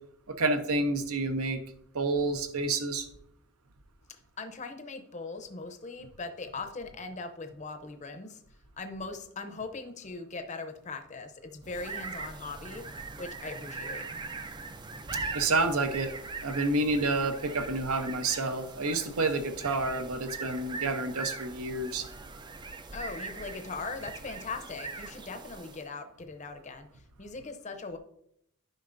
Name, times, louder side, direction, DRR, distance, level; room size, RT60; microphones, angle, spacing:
voice 1, 0.3-1.6 1.9-3.1 15.3-16.1 16.4-22.1, right 2 dB, 75° right, 8 dB, 0.8 m, -29 dB
voice 2, 4.4-8.4 8.8-12.8 13.2-14.0 22.9-28.0, left 3 dB, 30° left, 7 dB, 0.6 m, -40 dB
sound 1, 11.6-25.9, right 3 dB, 20° right, 0.4 m, -41 dB
10.5 x 5.2 x 2.6 m, 0.73 s
head